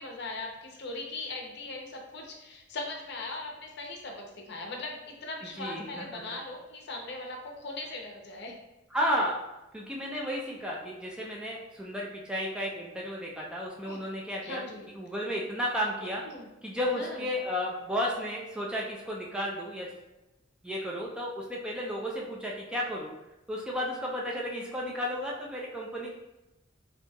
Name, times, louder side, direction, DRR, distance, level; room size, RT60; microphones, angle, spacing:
voice 1, 0.0-8.6 13.8-14.0 14.4-14.9 16.3-16.5 17.0-17.2, left 2 dB, 55° left, 1 dB, 0.6 m, -39 dB
voice 2, 5.6-6.4 8.9-9.4 9.7-14.6 14.9-16.2 16.6-19.9 20.6-23.1 23.5-26.1, equal, 5° right, -3 dB, 0.4 m, -33 dB
4.3 x 2.7 x 2.2 m, 0.99 s
head